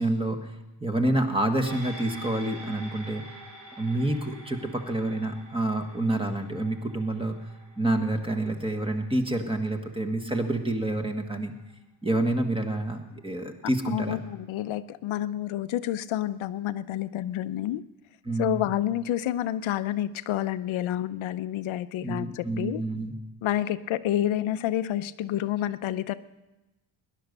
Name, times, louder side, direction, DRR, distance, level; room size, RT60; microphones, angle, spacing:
voice 1, 0.0-3.2 3.8-7.3 7.8-11.5 12.0-14.2 18.2-18.7 22.0-23.1, right 1 dB, 10° right, 5 dB, 1.4 m, -28 dB
sound 1, 1.7-10.3 10.7-10.8, right 1 dB, 40° right, 3.0 m, -47 dB
voice 2, 13.9-17.8 18.4-22.8 23.4-26.1, left 12 dB, 80° left, 12 dB, 0.7 m, -29 dB
18.0 x 11.0 x 6.7 m, 1.0 s
cardioid pair, 130°, 47 cm